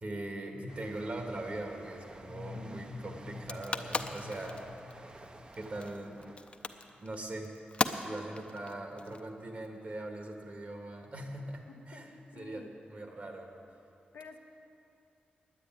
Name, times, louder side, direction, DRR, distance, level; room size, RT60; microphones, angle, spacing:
voice 1, 0.0-4.6 5.6-6.2 7.0-7.5 8.0-13.5, right 1 dB, 45° right, 2 dB, 1.7 m, -41 dB
sound 1, 0.7-8.1 8.4-8.8, right 2 dB, 30° right, 0.7 m, -53 dB
sound 2, 2.2-5.9, left 3 dB, 70° left, 1.1 m, -48 dB
sound 3, 3.3-9.7, left 3 dB, 35° left, 0.6 m, -37 dB
voice 2, 11.9-12.7 14.1-14.4, left 5 dB, 90° left, 5 dB, 0.9 m, -50 dB
10.0 x 9.3 x 9.0 m, 2.7 s
wide cardioid pair, 90°, 3 cm